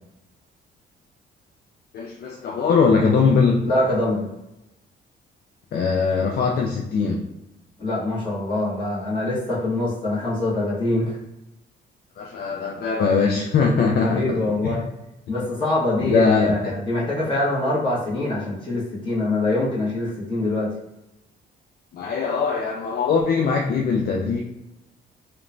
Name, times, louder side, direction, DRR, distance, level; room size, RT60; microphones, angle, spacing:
voice 1, 1.9-3.7 5.7-7.2 12.2-14.3 14.6-14.8 16.0-16.7 21.9-24.4, left 5 dB, 50° left, 0 dB, 0.4 m, -21 dB
voice 2, 3.6-4.3 7.8-11.2 13.8-14.9 15.3-20.7, left 2 dB, 25° left, -7 dB, 1.2 m, -24 dB
2.9 x 2.2 x 2.5 m, 0.90 s
cardioid pair, 90°, 20 cm